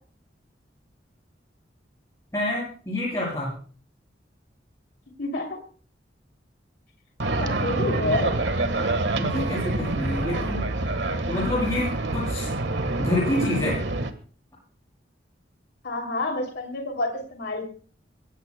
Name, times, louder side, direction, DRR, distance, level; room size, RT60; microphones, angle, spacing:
voice 1, 2.3-3.5 9.2-10.6 11.3-12.5 13.0-13.8, left 1 dB, 20° left, -6 dB, 7.8 m, -27 dB
voice 2, 5.2-5.6 7.4-8.4 15.8-17.7, left 2 dB, 60° left, 3 dB, 2.9 m, -28 dB
sound 1, 7.2-14.1, right 2 dB, 75° right, 1.4 m, -26 dB
26.5 x 16.0 x 2.2 m, 0.42 s
head